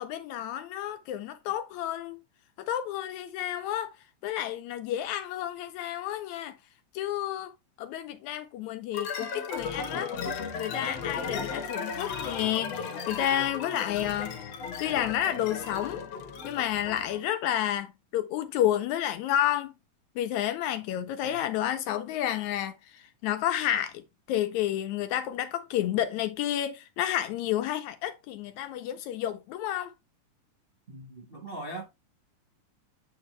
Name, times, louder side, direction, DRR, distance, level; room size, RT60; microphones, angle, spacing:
voice 1, 0.0-2.2 2.6-4.0 4.2-6.6 6.9-7.5 7.8-14.4 14.8-16.0 16.4-19.7 20.2-29.9, left 11 dB, 80° left, 1.8 m, -30 dB
sound 1, 8.9-17.2, left 5 dB, 60° left, 2.0 m, -35 dB
voice 2, 30.9-31.8, right 2 dB, 35° right, 0.9 m, -40 dB
8.8 x 4.5 x 3.2 m
omnidirectional pair, 3.6 m